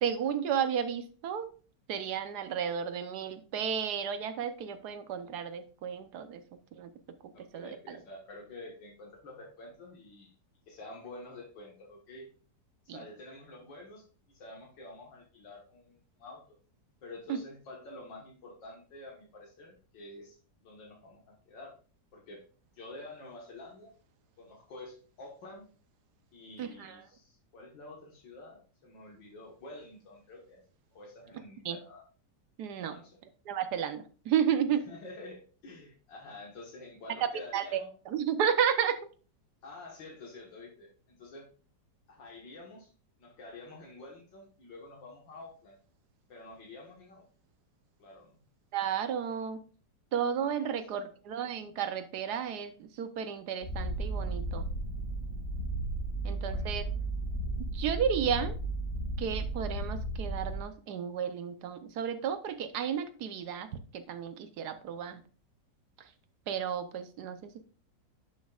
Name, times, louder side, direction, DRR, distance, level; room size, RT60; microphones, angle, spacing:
voice 1, 0.0-1.5 1.9-6.4 6.8-6.9 7.2-8.0 12.9-13.0 17.3-17.4 26.6-27.0 31.6-31.8 32.6-33.0 33.5-34.9 37.2-37.8 38.1-39.0 48.7-49.6 50.1-54.7 56.2-56.8 57.7-58.6 59.2-63.7 63.9-65.2 66.5-67.6, right 8 dB, 65° right, 10 dB, 1.2 m, -32 dB
voice 2, 7.3-10.3 10.7-12.3 12.9-16.6 17.0-21.7 22.1-22.4 22.7-23.9 24.4-25.7 26.3-30.6 30.9-32.0 32.8-33.2 34.9-37.9 39.6-41.5 42.1-42.9 43.2-45.8 46.3-47.3 48.0-48.4 50.6-51.1 56.3-57.1, left 2 dB, 80° left, -1 dB, 2.1 m, -49 dB
Purr, 53.6-60.6, right 2 dB, 35° left, 1.6 m, -34 dB
10.5 x 6.4 x 2.4 m, 0.38 s
omnidirectional pair, 2.0 m